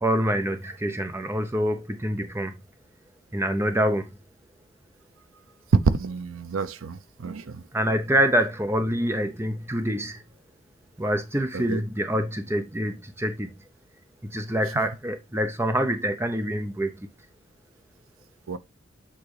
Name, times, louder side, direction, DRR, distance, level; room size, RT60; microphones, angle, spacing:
voice 1, 0.0-2.5 3.3-4.1 7.7-10.2 11.0-13.5 14.2-17.0, equal, 10° right, 0.6 m, -26 dB
voice 2, 6.0-7.6 11.5-11.8 18.5-18.6, right 5 dB, 75° right, 0.6 m, -34 dB
8.2 x 3.7 x 3.2 m
head